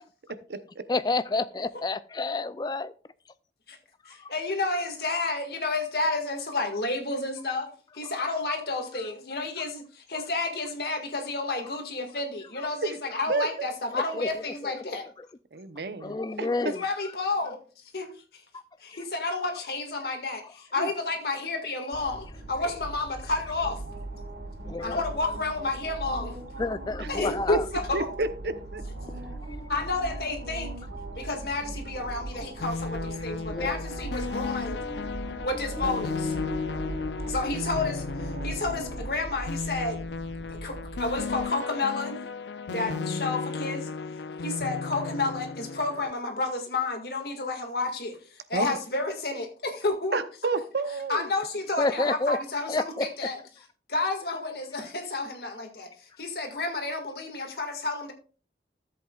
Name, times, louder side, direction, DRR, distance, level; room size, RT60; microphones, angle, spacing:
voice 1, 0.9-2.9 8.0-8.1 8.9-9.0 12.6-12.7 13.9-14.8 15.2-15.3 16.0-16.9 18.5-18.6 20.4-20.5 24.6-25.0 26.6-27.7 33.4-33.8 34.1-34.3 51.8-52.4 52.7-53.1 57.6-57.7, left 3 dB, 25° left, 14 dB, 0.3 m, -30 dB
voice 2, 4.3-7.7 7.9-15.0 16.6-17.6 17.9-18.4 18.8-23.8 24.8-26.4 27.1-28.1 29.7-30.7 31.2-34.8 35.4-36.4 37.3-40.0 40.5-42.2 42.7-43.9 44.4-50.2 51.1-52.7 53.2-53.3 53.9-58.1, left 3 dB, 65° left, 4 dB, 1.9 m, -30 dB
voice 3, 13.3-13.7 15.5-16.5 20.8-20.9 27.0-27.1 27.9-28.8 42.7-43.2 48.5-48.7 50.1-51.3, right 3 dB, 70° right, 12 dB, 0.8 m, -30 dB
sound 1, 21.9-41.4, right 1 dB, 85° right, 4.7 m, -38 dB
sound 2, 32.6-46.1, left 4 dB, 80° left, 0.5 m, -35 dB
13.5 x 7.8 x 2.4 m, 0.38 s
head